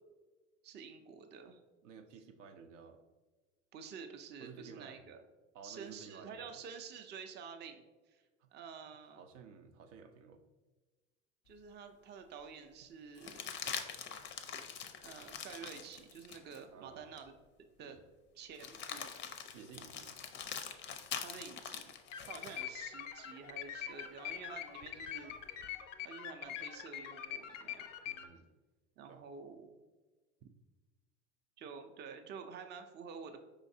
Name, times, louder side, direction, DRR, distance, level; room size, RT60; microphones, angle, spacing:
voice 1, 0.6-1.6 3.7-5.2 5.6-8.2 8.5-9.2 11.5-13.4 15.0-17.3 17.8-18.0 18.3-19.1 21.2-21.9 22.2-25.3 26.0-27.9 29.0-29.8 31.6-33.4, right 6 dB, 30° right, 6 dB, 0.4 m, -49 dB
voice 2, 1.8-3.0 4.4-5.0 5.5-6.6 8.4-8.5 9.1-10.4 16.7-17.1 17.8-18.0 19.5-20.1 28.1-28.5 29.1-29.3, right 5 dB, 80° right, 7 dB, 0.6 m, -53 dB
sound 1, 11.6-11.7 13.2-16.6 17.2-17.3 18.5-22.6 24.8-25.7, left 7 dB, 30° left, 0.4 m, -44 dB
sound 2, 22.1-28.3, left 10 dB, 85° left, 0.5 m, -44 dB
4.9 x 3.1 x 2.6 m, 1.2 s
hypercardioid pair, 90°, 37 cm